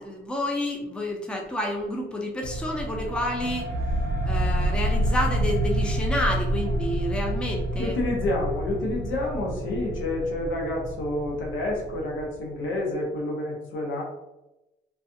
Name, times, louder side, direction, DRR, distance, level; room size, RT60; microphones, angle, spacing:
voice 1, 0.0-3.7 4.2-8.0, left 1 dB, 5° left, 1 dB, 0.5 m, -29 dB
sound 1, 2.4-12.6, right 1 dB, 60° right, 0.6 m, -28 dB
voice 2, 7.8-14.0, left 2 dB, 75° left, -1 dB, 0.9 m, -29 dB
2.3 x 2.3 x 2.6 m, 0.96 s
cardioid pair, 90°, 20 cm